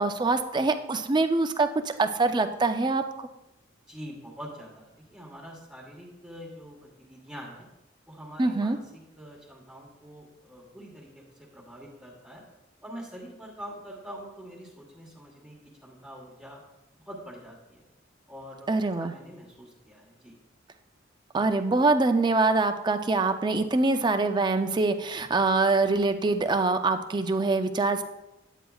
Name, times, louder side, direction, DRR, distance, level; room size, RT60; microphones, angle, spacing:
voice 1, 0.0-3.0 8.4-8.8 18.7-19.1 21.3-28.0, right 3 dB, 25° right, 8 dB, 0.4 m, -24 dB
voice 2, 3.9-7.7 8.1-11.2 11.5-12.4 12.8-16.6 17.1-17.9 18.3-20.3, equal, 5° right, -3 dB, 1.3 m, -45 dB
9.3 x 9.0 x 2.3 m, 0.95 s
head